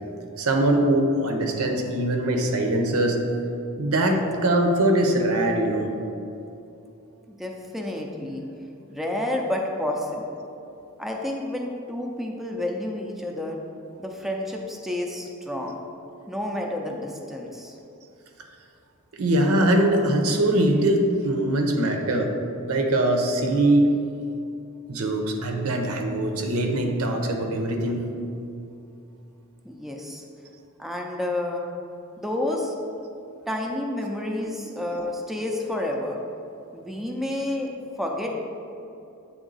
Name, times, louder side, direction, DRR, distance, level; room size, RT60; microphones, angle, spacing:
voice 1, 0.4-3.2 3.8-5.9 19.2-22.3 22.7-23.9 24.9-28.1, right 1 dB, 80° right, 3 dB, 0.7 m, -22 dB
voice 2, 7.4-8.5 8.9-10.4 11.0-13.6 14.0-15.8 16.3-17.8 29.6-30.2 30.8-31.6 32.2-32.7 33.5-36.2 36.7-37.7 38.0-38.4, left 1 dB, ahead, 0 dB, 0.4 m, -30 dB
7.8 x 3.6 x 4.0 m, 2.7 s
head